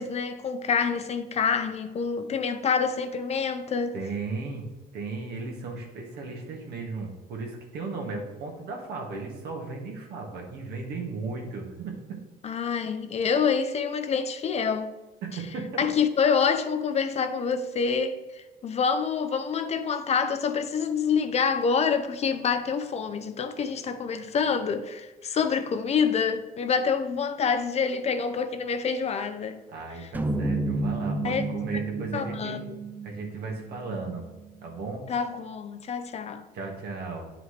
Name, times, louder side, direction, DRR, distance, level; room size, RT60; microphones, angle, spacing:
voice 1, 0.0-3.9 12.4-14.9 15.8-29.6 31.2-31.5 32.1-32.8 35.1-36.4, left 6 dB, 40° left, 0.6 m, -27 dB
voice 2, 3.9-4.7 4.9-11.9 15.2-15.8 29.7-32.7 33.0-34.2 34.6-35.1 36.5-37.3, right 3 dB, 75° right, 1.8 m, -36 dB
sound 1, 30.1-34.5, right 3 dB, 10° right, 0.5 m, -31 dB
9.5 x 4.9 x 3.3 m
cardioid pair, 110°, 17 cm